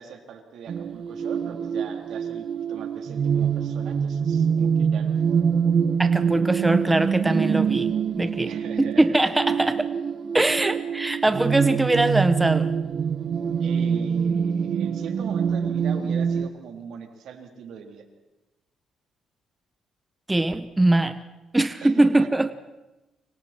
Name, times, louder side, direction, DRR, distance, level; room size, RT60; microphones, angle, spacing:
voice 1, 0.0-5.2 8.4-9.2 13.6-18.1 21.8-22.3, right 7 dB, 75° right, 3 dB, 3.6 m, -40 dB
sound 1, 0.7-16.5, right 7 dB, 60° right, 1.1 m, -25 dB
voice 2, 6.0-9.9 10.3-12.7 20.3-21.2 21.5-22.5, right 2 dB, 15° right, 11 dB, 0.9 m, -22 dB
29.5 x 25.0 x 4.5 m, 1.0 s
cardioid pair, 90°, 0 cm